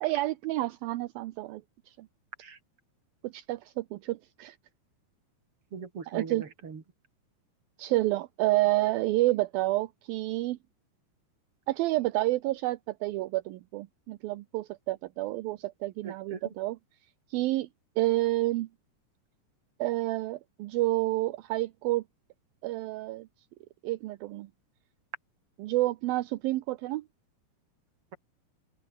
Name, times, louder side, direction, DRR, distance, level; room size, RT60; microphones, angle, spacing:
voice 1, 0.0-2.1 3.2-4.6 6.1-6.4 7.8-10.6 11.7-16.8 17.3-17.7 18.0-18.7 19.8-22.0 22.6-23.3 23.8-24.5 25.6-27.0, right 17 dB, 75° right, 2.4 m, -29 dB
voice 2, 5.7-6.8 16.0-16.4, right 5 dB, 35° right, 4.0 m, -40 dB
open air
omnidirectional pair, 4.8 m